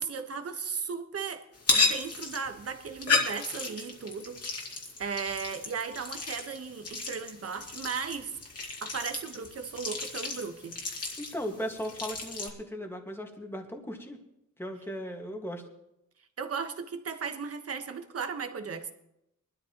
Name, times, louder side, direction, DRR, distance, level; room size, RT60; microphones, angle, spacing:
voice 1, 0.0-1.4 1.7-8.3 8.8-10.8 16.4-18.9, right 5 dB, 50° right, 7 dB, 1.3 m, -36 dB
sound 1, 1.5-12.5, left 3 dB, 50° left, 2.3 m, -33 dB
voice 2, 11.2-14.2 14.6-15.6, equal, 5° left, 2 dB, 1.7 m, -37 dB
22.5 x 12.5 x 3.0 m, 0.83 s
wide cardioid pair, 130°, 31 cm